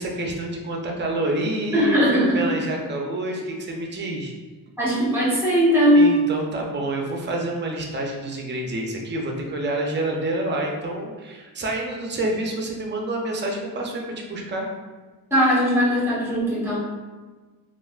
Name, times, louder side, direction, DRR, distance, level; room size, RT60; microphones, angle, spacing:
voice 1, 0.0-4.3 5.9-14.7, right 1 dB, 30° right, 0 dB, 0.5 m, -28 dB
voice 2, 1.7-2.6 4.8-6.0 15.3-16.8, equal, 5° right, -7 dB, 1.0 m, -19 dB
3.2 x 2.4 x 2.4 m, 1.3 s
cardioid pair, 125°, 35 cm